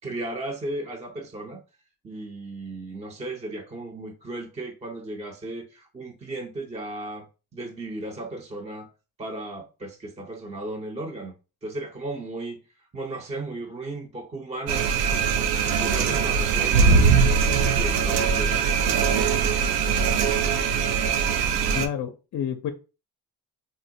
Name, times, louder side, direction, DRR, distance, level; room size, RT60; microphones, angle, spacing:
voice 1, 0.0-1.6 2.0-7.3 7.5-8.9 9.2-11.4 11.6-14.9 15.3-17.3 17.7-18.7 19.0-19.7, right 2 dB, 15° right, 0.5 m, -35 dB
sound 1, 14.7-21.9, right 5 dB, 85° right, 0.5 m, -21 dB
voice 2, 21.7-22.7, left 9 dB, 45° left, 0.5 m, -29 dB
3.7 x 2.0 x 2.6 m
cardioid pair, 75°, 39 cm